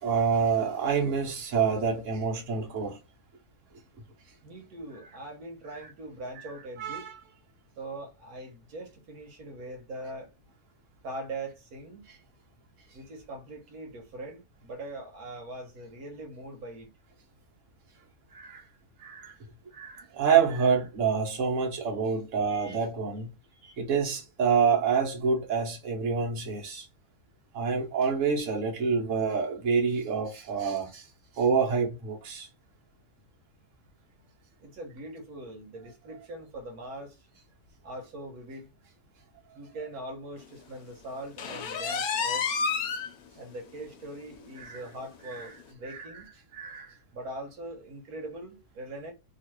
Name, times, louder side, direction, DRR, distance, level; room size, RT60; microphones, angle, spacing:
voice 1, 0.0-3.0 6.8-7.1 18.3-18.6 19.0-19.3 19.7-23.3 23.6-26.9 27.5-31.1 31.3-32.5 44.6-44.8 45.3-45.5 45.8-46.2 46.5-46.9, right 6 dB, 60° right, 1.3 m, -27 dB
voice 2, 4.4-7.1 7.8-10.3 11.0-12.1 12.9-16.9 34.6-37.3 37.8-38.7 39.5-42.5 43.4-46.3 47.1-49.1, right 1 dB, 85° right, 1.3 m, -41 dB
sound 1, 41.4-43.1 43.5-43.6 44.1-44.2 44.6-44.7 45.6-45.7, left 6 dB, 90° left, 1.2 m, -29 dB
3.0 x 2.5 x 3.0 m
omnidirectional pair, 1.5 m